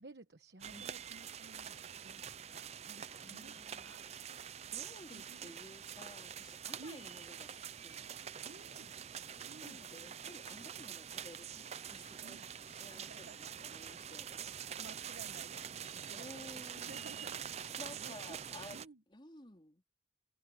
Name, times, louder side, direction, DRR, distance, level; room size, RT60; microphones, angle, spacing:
voice 1, 0.0-4.0 5.1-5.5 6.8-7.1 8.4-8.9 9.4-9.8 12.2-12.5 12.9-13.4 14.8-18.4 18.7-19.0, right 3 dB, 70° right, 1.2 m, -55 dB
sound 1, 0.6-18.9, right 8 dB, 40° right, 0.5 m, -46 dB
voice 2, 3.2-4.3 4.7-8.9 9.6-14.4 16.1-17.3 17.6-20.0, left 1 dB, 25° left, 3.9 m, -55 dB
head